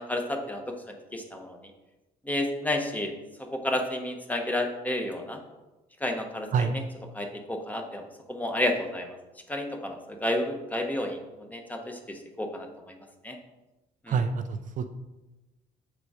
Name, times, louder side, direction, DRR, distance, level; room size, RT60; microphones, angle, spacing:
voice 1, 0.0-1.6 2.2-3.1 3.5-5.4 6.0-6.8 7.1-9.2 9.5-13.0 13.2-13.4 14.0-14.2, left 1 dB, 10° left, 3 dB, 1.0 m, -31 dB
voice 2, 14.1-14.8, right 5 dB, 50° right, 7 dB, 0.5 m, -27 dB
6.8 x 4.6 x 4.9 m, 1.1 s
cardioid pair, 110°, 17 cm